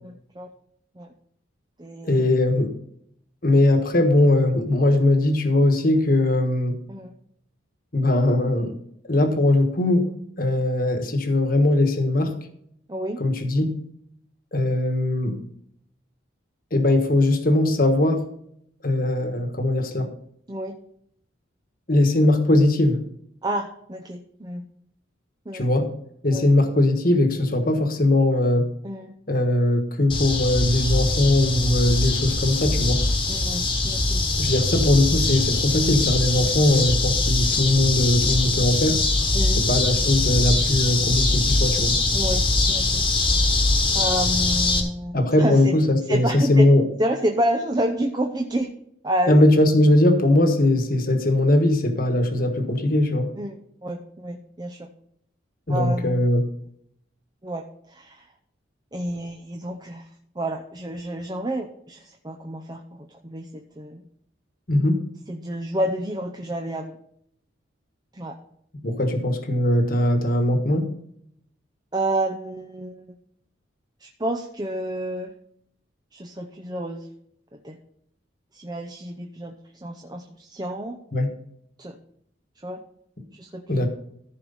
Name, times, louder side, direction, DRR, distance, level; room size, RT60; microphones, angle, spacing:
voice 1, 0.0-0.5 1.0-1.1 1.8-2.2 6.9-7.1 12.9-13.2 20.5-20.8 23.4-24.7 25.5-25.7 26.3-26.5 28.8-29.1 33.3-34.2 36.4-36.5 39.3-39.6 42.1-43.0 43.9-45.7 46.1-46.7 47.0-48.7 49.0-49.4 53.4-54.9 55.7-56.3 57.4-58.3 58.9-60.1 60.4-64.0 65.3-67.0 68.1-68.4 71.9-73.2 74.0-75.3 76.1-77.1 77.5-77.8 78.5-79.6 79.8-81.0 81.8-82.0 82.6-82.8 83.3-83.9, right 1 dB, 20° right, 3 dB, 0.7 m, -29 dB
voice 2, 2.0-2.7 3.4-6.7 7.9-8.8 9.0-10.1 10.4-12.4 13.2-13.8 14.5-15.4 16.7-18.2 18.8-20.1 21.9-23.0 25.5-25.9 26.2-28.7 29.3-33.0 34.4-39.0 39.5-42.0 45.1-46.8 49.3-53.3 55.7-56.4 64.7-65.0 68.8-70.9 81.1-81.3 83.7-83.9, left 1 dB, 45° left, 5 dB, 1.4 m, -20 dB
sound 1, 30.1-44.8, left 2 dB, 25° left, 1.4 m, -22 dB
14.5 x 4.8 x 5.5 m, 0.70 s
head